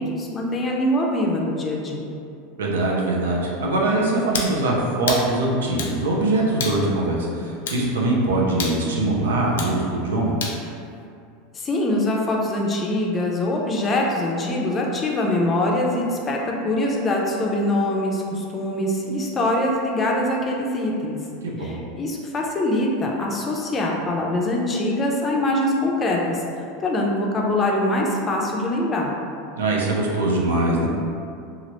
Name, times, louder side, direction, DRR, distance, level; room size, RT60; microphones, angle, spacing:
voice 1, 0.0-2.0 11.5-21.2 21.6-26.4 26.8-29.1, left 1 dB, 25° left, -1 dB, 0.5 m, -23 dB
voice 2, 2.6-10.3 21.4-21.8 29.6-30.9, right 2 dB, 90° right, -3 dB, 0.5 m, -22 dB
sound 1, 4.3-4.5 5.1-5.3 5.8-6.0 6.6-6.8 7.7-7.8 8.6-8.8 9.6-9.8 10.4-10.6, left 5 dB, 80° left, 0.4 m, -28 dB
2.9 x 2.4 x 3.0 m, 2.5 s
hypercardioid pair, 105°, 0 cm